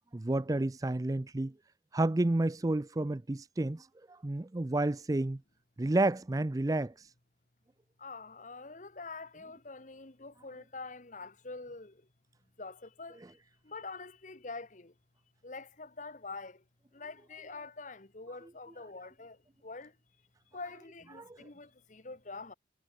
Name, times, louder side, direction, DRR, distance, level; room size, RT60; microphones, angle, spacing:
voice 1, 0.1-1.5 1.9-5.4 5.8-6.9 21.2-21.5, right 2 dB, 20° right, 0.5 m, -30 dB
voice 2, 8.0-12.0 12.6-13.4 13.6-14.9 15.4-16.6 16.9-19.9 20.5-22.5, left 3 dB, 45° left, 1.5 m, -45 dB
head